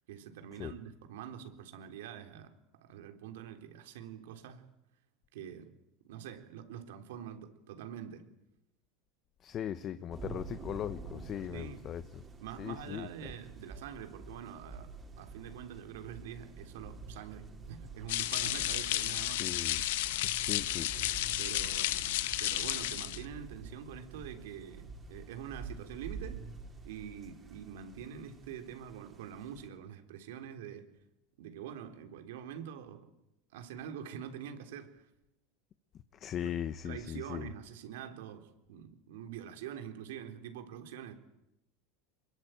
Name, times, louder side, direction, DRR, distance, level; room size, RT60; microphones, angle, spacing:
voice 1, 0.1-4.6 5.3-5.7 6.1-8.2 11.5-11.8 12.4-19.4 21.4-26.4 26.8-30.9 31.4-33.1 33.5-35.1 36.4-36.5 36.8-41.1, right 9 dB, 85° right, 3.8 m, -45 dB
voice 2, 9.4-12.2 12.6-13.1 19.0-19.8 20.1-20.9 36.1-37.5, left 10 dB, 35° left, 1.1 m, -39 dB
sound 1, 10.1-29.7, right 4 dB, 20° right, 4.2 m, -48 dB
sound 2, 18.1-23.2, left 15 dB, 80° left, 1.5 m, -32 dB
26.0 x 22.0 x 9.3 m
supercardioid pair, 135°, 0 cm